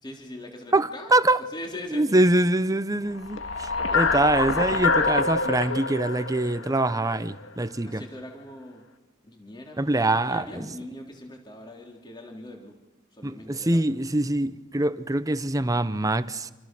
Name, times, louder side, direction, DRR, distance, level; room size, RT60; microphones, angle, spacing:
voice 1, 0.0-1.1 1.5-2.1 7.8-8.8 9.2-12.7 13.1-14.0, left 1 dB, 25° left, 3.4 m, -41 dB
voice 2, 0.7-1.4 1.9-8.0 9.8-10.4 13.2-16.5, right 2 dB, 20° right, 0.9 m, -24 dB
sound 1, 3.2-7.5, left 4 dB, 90° left, 1.8 m, -26 dB
27.5 x 27.5 x 6.2 m
head